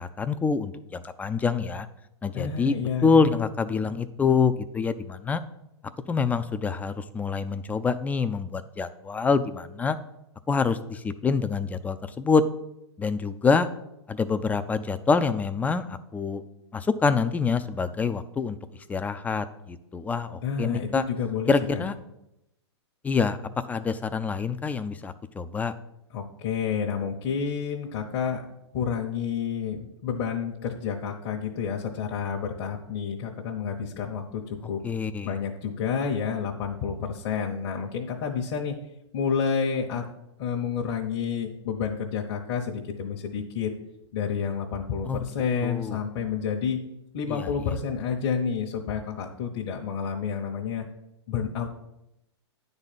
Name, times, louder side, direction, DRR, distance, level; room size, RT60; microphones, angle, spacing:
voice 1, 0.0-1.9 2.2-2.7 3.0-5.4 6.1-10.0 10.5-12.4 13.0-13.7 14.1-16.4 16.7-18.6 18.9-21.0 21.5-21.9 23.0-23.4 23.7-25.7 34.8-35.3 45.0-45.2 45.6-46.0 47.3-47.8, left 5 dB, 10° left, 11 dB, 0.4 m, -26 dB
voice 2, 2.3-3.5 20.4-21.8 26.1-28.4 28.7-34.8 35.2-38.8 39.1-40.1 40.4-43.7 44.1-46.8 47.1-50.9 51.3-51.7, left 6 dB, 50° left, 0 dB, 1.1 m, -29 dB
9.7 x 4.1 x 7.4 m, 0.86 s
hypercardioid pair, 125°, 15 cm